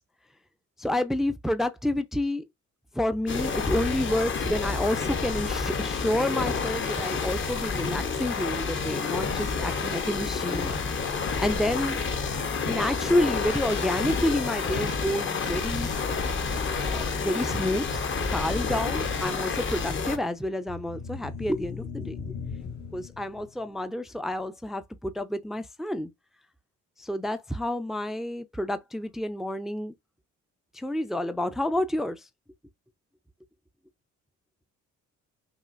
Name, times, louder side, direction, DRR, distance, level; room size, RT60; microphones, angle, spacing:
voice 1, 0.8-2.4 2.9-10.7 11.4-12.0 12.7-15.9 16.9-18.0 18.3-22.2 22.9-26.1 27.0-29.9 30.7-32.2, left 1 dB, ahead, 0.5 m, -29 dB
sound 1, 3.3-20.2, left 5 dB, 40° left, 0.9 m, -29 dB
sound 2, 20.2-23.7, left 5 dB, 70° left, 1.6 m, -40 dB
5.5 x 2.4 x 2.5 m
cardioid pair, 90°, 30 cm